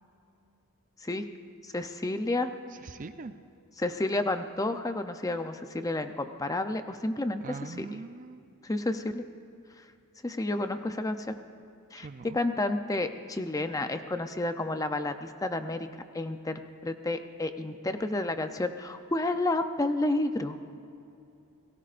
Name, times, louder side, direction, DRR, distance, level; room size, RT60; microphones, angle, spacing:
voice 1, 1.6-2.5 3.8-8.0 8.6-9.2 10.2-11.3 11.9-15.9 16.1-20.6, left 2 dB, 15° left, 8 dB, 0.6 m, -31 dB
voice 2, 2.8-3.3 7.4-8.4 12.0-12.4, right 3 dB, 35° right, 10 dB, 0.5 m, -42 dB
29.0 x 18.5 x 2.5 m, 2.7 s
head